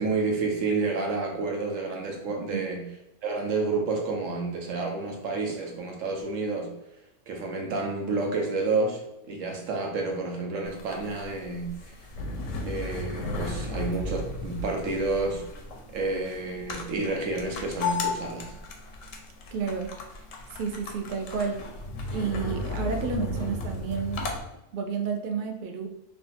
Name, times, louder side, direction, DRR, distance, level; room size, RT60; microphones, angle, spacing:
voice 1, 0.0-2.8 3.2-6.7 7.3-11.9 12.6-15.4 15.9-18.5, right 3 dB, 80° right, 1 dB, 1.1 m, -30 dB
sound 1, 10.6-24.4, left 3 dB, 85° left, 1.0 m, -35 dB
voice 2, 19.5-20.2 20.5-21.6 22.1-24.3 24.7-25.9, right 5 dB, 55° right, 3 dB, 0.6 m, -31 dB
3.3 x 2.3 x 4.0 m, 0.89 s
omnidirectional pair, 1.3 m